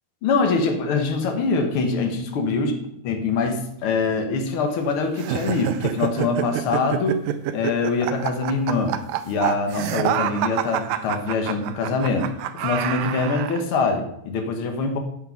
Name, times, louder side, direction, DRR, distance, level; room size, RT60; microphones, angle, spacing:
voice 1, 0.2-2.7 3.0-7.2 7.5-15.0, left 4 dB, 55° left, 5 dB, 1.6 m, -24 dB
sound 1, 5.2-13.6, right 11 dB, 80° right, 2.2 m, -27 dB
9.2 x 6.8 x 5.8 m, 0.76 s
omnidirectional pair, 4.0 m